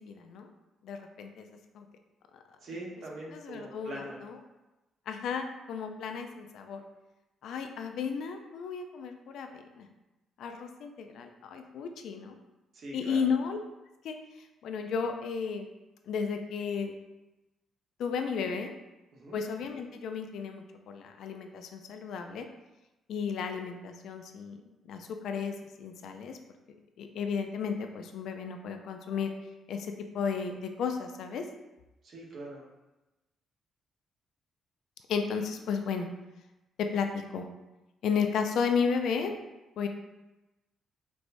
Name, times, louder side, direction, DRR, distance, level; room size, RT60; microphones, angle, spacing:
voice 1, 0.1-0.5 0.8-1.5 1.7-1.9 3.3-4.4 5.1-6.8 7.4-9.9 10.4-12.4 12.9-13.6 14.0-14.2 14.6-15.7 16.1-16.9 18.0-18.7 19.3-22.5 23.1-26.4 27.0-29.3 29.7-31.4 35.1-36.1 36.8-37.5 38.0-39.3 39.8-39.9, left 6 dB, 75° left, 5 dB, 0.3 m, -33 dB
voice 2, 2.6-4.2 12.7-13.3 19.1-19.4 32.0-32.7, right 1 dB, 60° right, -3 dB, 1.0 m, -42 dB
4.5 x 2.1 x 2.5 m, 1.0 s
cardioid pair, 90°, 0 cm